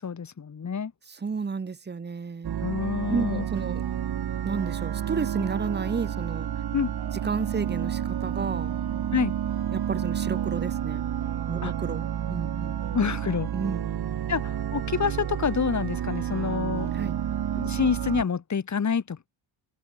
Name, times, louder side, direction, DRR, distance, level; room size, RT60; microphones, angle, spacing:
voice 1, 0.0-0.9 2.6-3.5 6.7-6.9 9.1-9.4 11.6-11.7 12.9-13.5 14.3-16.9 17.6-19.3, left 6 dB, 40° left, 4.2 m, -27 dB
voice 2, 1.1-2.5 3.1-3.8 4.4-6.5 7.2-8.7 9.7-11.0 11.5-12.8 13.5-13.9 16.9-17.2, right 5 dB, 25° right, 1.3 m, -32 dB
sound 1, 2.4-18.2, right 10 dB, 55° right, 2.0 m, -30 dB
open air
cardioid pair, 135°, 45 cm